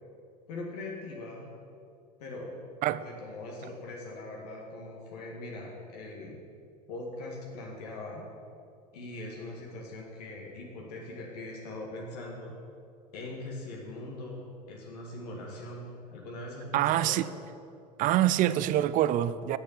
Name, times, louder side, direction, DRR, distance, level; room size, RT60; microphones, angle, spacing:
voice 1, 0.5-1.5 2.2-2.5 3.0-6.4 6.9-8.2 8.9-12.5 13.1-15.8 16.1-17.3, left 2 dB, 70° left, -1 dB, 1.9 m, -41 dB
voice 2, 16.7-17.3 18.0-19.6, right 13 dB, 40° right, 15 dB, 0.4 m, -25 dB
7.7 x 7.1 x 7.3 m, 2.4 s
hypercardioid pair, 80°, 20 cm